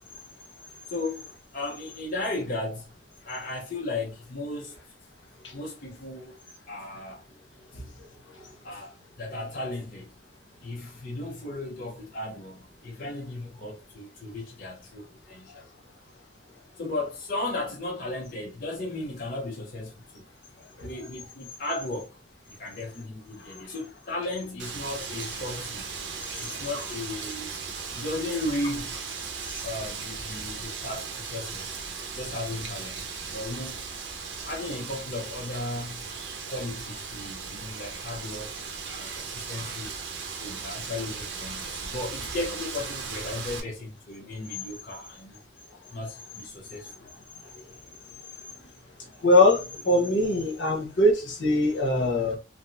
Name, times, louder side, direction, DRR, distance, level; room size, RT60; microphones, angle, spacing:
voice 1, 0.9-1.2 1.5-2.9 3.2-4.7 5.5-6.3 6.7-7.2 8.6-8.9 9.2-10.2 10.6-15.6 16.8-20.3 20.8-22.1 22.6-26.0 26.4-27.5 27.9-28.9 29.6-31.8 32.2-33.8 34.4-36.1 36.5-38.5 38.9-39.9 40.4-45.4 45.9-46.9, left 2 dB, 45° left, 0.6 m, -35 dB
Wind, 24.6-43.6, right 5 dB, 65° right, 0.6 m, -37 dB
voice 2, 49.2-52.4, left 1 dB, 75° left, 0.9 m, -22 dB
3.4 x 2.0 x 2.5 m
head